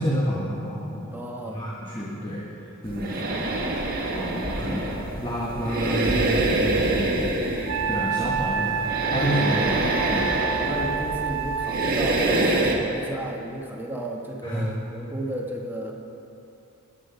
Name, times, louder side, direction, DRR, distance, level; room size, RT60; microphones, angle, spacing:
voice 1, 0.0-1.1 1.5-2.4 2.8-3.5 4.1-7.3 7.9-9.7 10.1-10.3 14.4-14.7, equal, 20° left, -5 dB, 1.3 m, -29 dB
voice 2, 1.1-1.6 4.6-4.9 9.6-9.8 10.4-15.9, right 1 dB, 10° right, -1 dB, 1.2 m, -33 dB
sound 1, 2.8-12.7, right 2 dB, 45° right, 1.5 m, -26 dB
Wind instrument woodwind instrument, 7.7-12.0, right 6 dB, 65° right, 0.5 m, -28 dB
13.5 x 10.0 x 5.7 m, 2.9 s
head